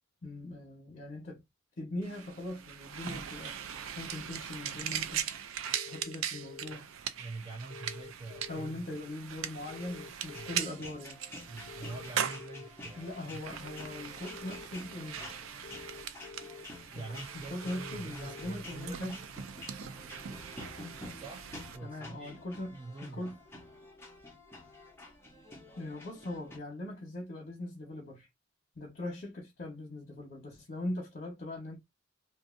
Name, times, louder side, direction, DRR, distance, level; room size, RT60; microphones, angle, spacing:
voice 1, 0.2-1.4 1.8-3.6 4.0-5.3 5.8-6.9 8.5-11.2 12.9-15.2 16.9-17.1 17.5-19.2 21.8-23.4 25.8-28.3 28.8-31.8, left 1 dB, 50° left, 1.0 m, -40 dB
sound 1, 2.0-21.8, right 8 dB, 85° right, 0.4 m, -40 dB
sound 2, 5.7-6.7 7.7-8.7 9.7-10.7 11.7-12.7 13.6-14.7 15.6-16.6 17.6-18.6, left 5 dB, 75° left, 0.3 m, -48 dB
voice 2, 7.2-8.9 10.3-10.6 11.5-13.4 15.2-15.3 16.9-19.1 21.1-22.4 22.7-23.3, right 3 dB, 30° right, 0.7 m, -45 dB
sound 3, 10.3-26.6, left 2 dB, 10° left, 0.8 m, -50 dB
2.6 x 2.6 x 2.5 m
head